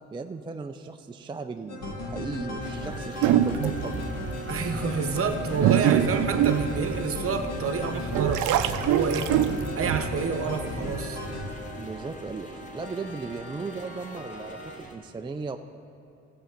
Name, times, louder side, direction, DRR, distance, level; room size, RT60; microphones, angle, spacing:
voice 1, 0.1-4.1 11.7-15.6, right 4 dB, 15° right, 6 dB, 0.4 m, -36 dB
sound 1, 1.7-14.8, left 1 dB, 60° left, 1.9 m, -35 dB
sound 2, 2.6-14.9, left 1 dB, 25° left, 1.4 m, -48 dB
sound 3, 3.2-3.9 4.6-4.7 5.3-7.4 7.9-10.0, right 11 dB, 80° right, 0.5 m, -23 dB
voice 2, 4.5-9.3 9.7-11.2, right 5 dB, 50° right, 7 dB, 1.0 m, -29 dB
14.0 x 7.6 x 5.1 m, 2.8 s
cardioid pair, 90°, 30 cm